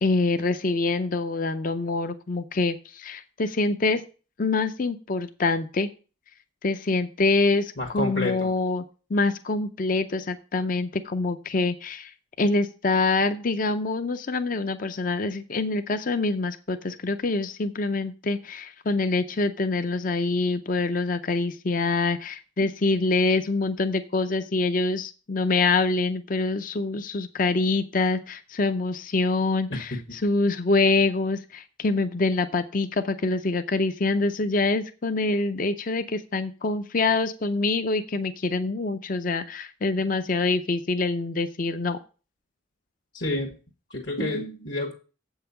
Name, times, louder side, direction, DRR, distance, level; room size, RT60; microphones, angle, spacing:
voice 1, 0.0-4.0 4.4-5.9 6.6-8.8 9.1-42.0, left 3 dB, 40° left, 10 dB, 0.5 m, -25 dB
voice 2, 7.8-8.5 22.6-22.7 29.7-30.2 43.1-43.6 43.9-44.9, left 2 dB, 60° left, 0 dB, 1.5 m, -30 dB
7.8 x 5.6 x 6.9 m, 0.36 s
head